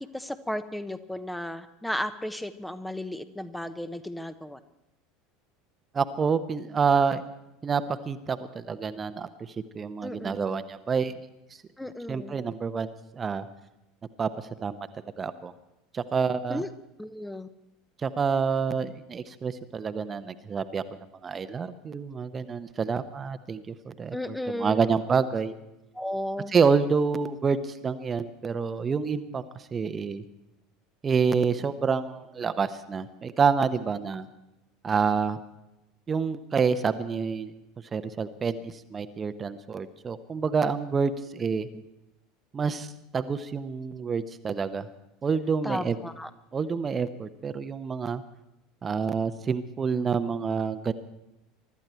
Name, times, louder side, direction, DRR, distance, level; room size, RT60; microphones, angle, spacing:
voice 1, 0.1-4.6 10.0-10.4 11.8-12.3 16.5-16.7 17.0-17.5 24.1-24.9 25.9-26.5 45.6-46.3, left 1 dB, 5° left, 11 dB, 1.0 m, -34 dB
voice 2, 5.9-7.2 7.6-9.3 9.7-11.1 12.1-12.9 13.1-13.5 14.2-14.8 15.2-15.5 15.9-16.6 18.0-20.8 21.2-25.5 26.5-29.4 29.7-30.2 31.0-34.3 34.8-35.4 36.1-37.5 37.9-41.7 42.5-44.9 45.2-46.0 46.5-48.2 48.8-50.9, right 5 dB, 25° right, 11 dB, 1.0 m, -27 dB
24.0 x 13.0 x 4.5 m, 0.91 s
figure-of-eight pair, 70°, 0 cm